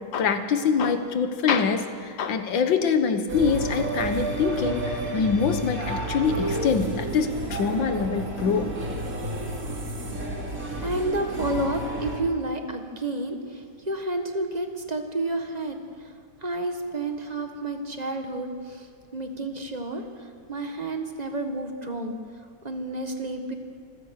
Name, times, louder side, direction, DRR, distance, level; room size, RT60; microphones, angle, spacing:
voice 1, 0.1-1.9 2.2-8.7, left 6 dB, 75° left, 9 dB, 2.0 m, -24 dB
sound 1, 3.3-12.2, right 2 dB, 45° right, 3.0 m, -31 dB
voice 2, 10.8-15.8 16.4-18.9 19.1-22.1 22.6-23.5, right 2 dB, 25° right, 5 dB, 1.6 m, -30 dB
26.0 x 15.5 x 6.5 m, 2.1 s
omnidirectional pair, 2.0 m